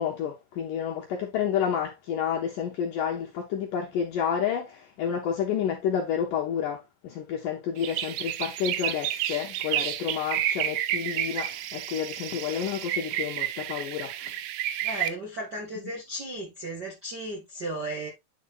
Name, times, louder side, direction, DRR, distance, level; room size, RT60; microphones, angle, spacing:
voice 1, 0.0-14.3, left 8 dB, 75° left, 2.0 m, -30 dB
sound 1, 7.8-15.1, right 12 dB, 85° right, 2.9 m, -31 dB
voice 2, 14.8-18.1, right 1 dB, 40° right, 1.4 m, -35 dB
10.0 x 4.9 x 2.6 m
omnidirectional pair, 5.1 m